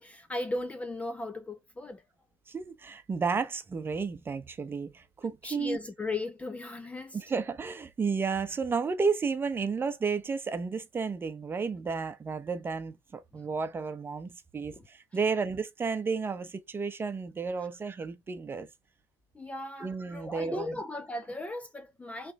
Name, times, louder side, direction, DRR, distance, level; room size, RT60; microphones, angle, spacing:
voice 1, 0.0-2.0 5.4-7.2 14.7-14.8 19.3-22.3, left 2 dB, 10° left, 0.6 m, -37 dB
voice 2, 2.5-5.8 7.1-18.7 19.8-20.8, right 5 dB, 20° right, 0.9 m, -32 dB
5.8 x 3.4 x 5.3 m
cardioid pair, 145°, 12 cm